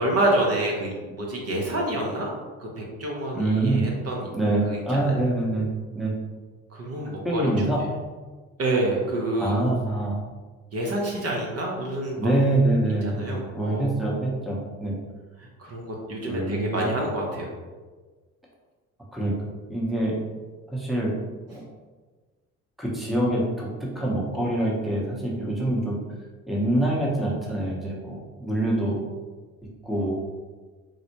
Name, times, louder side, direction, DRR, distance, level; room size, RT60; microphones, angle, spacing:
voice 1, 0.0-2.3 2.6-4.3 4.7-5.1 6.7-7.4 8.6-9.6 10.7-12.3 13.0-13.9 15.4-17.5, right 1 dB, 35° right, -1 dB, 0.9 m, -27 dB
voice 2, 3.3-3.8 4.3-5.7 5.9-6.1 7.2-7.8 9.4-10.2 12.2-15.0 16.3-16.9 19.1-19.3 19.7-20.1 20.7-21.1 21.5-21.6 22.8-23.7 23.9-26.0 26.5-29.0 29.8-30.1, right 1 dB, ahead, -4 dB, 0.8 m, -25 dB
4.0 x 2.1 x 2.9 m, 1.4 s
hypercardioid pair, 60°, 40 cm